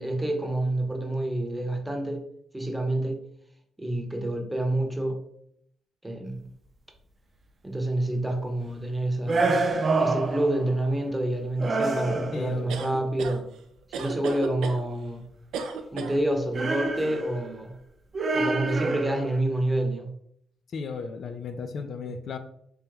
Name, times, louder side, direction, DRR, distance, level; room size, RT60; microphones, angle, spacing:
voice 1, 0.0-2.2 2.5-3.2 3.8-5.2 6.0-6.5 7.6-9.5 10.0-13.5 13.9-15.3 15.9-17.8 18.3-20.1, right 1 dB, 10° right, 3 dB, 0.8 m, -28 dB
sound 1, 9.3-10.7 11.6-12.6 16.5-17.5 18.1-19.4, right 3 dB, 40° right, 0.6 m, -27 dB
voice 2, 12.3-13.0 20.7-22.4, left 5 dB, 60° left, 8 dB, 0.5 m, -35 dB
sound 2, 12.7-13.4 13.9-14.8 15.5-16.2, right 5 dB, 80° right, 0.5 m, -34 dB
3.4 x 2.9 x 3.4 m, 0.70 s
cardioid pair, 90°, 0 cm